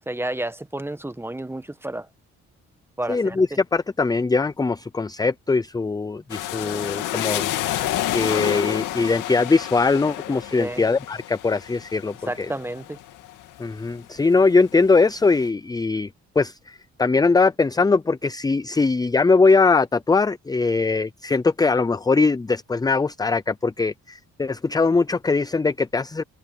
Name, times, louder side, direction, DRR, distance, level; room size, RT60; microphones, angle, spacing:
voice 1, 0.1-2.1 3.0-3.4 10.5-10.8 12.3-13.0, right 1 dB, 10° right, 1.2 m, -30 dB
voice 2, 3.1-7.5 8.1-12.5 13.6-16.1 16.4-26.2, left 4 dB, 15° left, 0.5 m, -21 dB
sound 1, 6.3-14.0 14.4-15.2, left 14 dB, 90° left, 2.3 m, -29 dB
cardioid pair, 90°, 30 cm